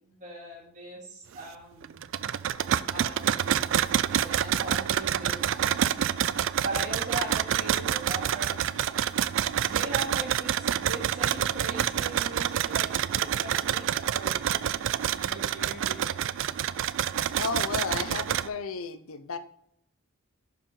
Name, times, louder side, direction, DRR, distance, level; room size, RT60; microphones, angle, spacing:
voice 1, 0.0-2.0 2.9-3.8 4.1-5.4 6.6-8.6 9.6-14.4 14.7-16.2, right 2 dB, 35° right, -4 dB, 2.4 m, -39 dB
sound 1, 1.8-18.5, right 10 dB, 60° right, 0.3 m, -27 dB
voice 2, 17.4-19.4, left 5 dB, 75° left, 11 dB, 0.7 m, -33 dB
11.5 x 4.6 x 3.8 m, 0.72 s
head